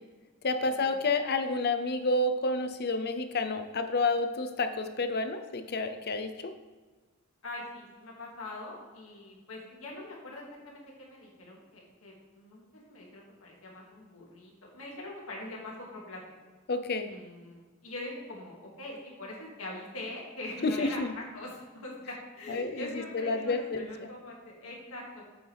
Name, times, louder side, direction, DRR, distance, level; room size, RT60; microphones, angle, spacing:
voice 1, 0.4-6.5 16.7-17.1 20.6-21.1 22.5-23.9, left 3 dB, 50° left, 9 dB, 0.7 m, -30 dB
voice 2, 7.4-16.2 17.1-25.2, left 1 dB, 75° left, -3 dB, 2.3 m, -43 dB
8.7 x 6.4 x 3.4 m, 1.4 s
head